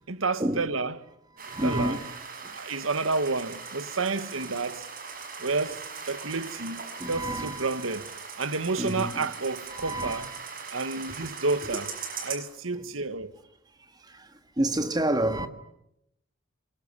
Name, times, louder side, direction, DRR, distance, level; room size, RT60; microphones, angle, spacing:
voice 1, 0.1-1.0 1.6-2.0 2.5-4.9 5.4-8.1 8.4-10.3 10.7-11.9 12.2-13.3, right 3 dB, 90° right, 1.5 m, -30 dB
voice 2, 1.4-2.1 6.9-7.7 8.8-9.3 9.7-10.3 10.9-11.0 12.7-12.8 14.6-15.5, right 1 dB, 20° right, 1.8 m, -29 dB
sound 1, 1.4-12.4, right 5 dB, 45° right, 5.7 m, -40 dB
24.5 x 22.5 x 9.9 m
head